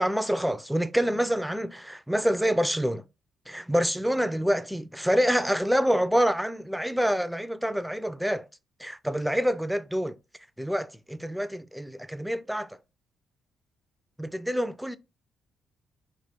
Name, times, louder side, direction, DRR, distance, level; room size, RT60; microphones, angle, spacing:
voice 1, 0.0-3.0 3.5-8.4 8.8-10.2 10.6-12.8 14.2-15.0, equal, ahead, 0.3 m, -26 dB
3.2 x 3.1 x 4.2 m
cardioid pair, 90°, 0 cm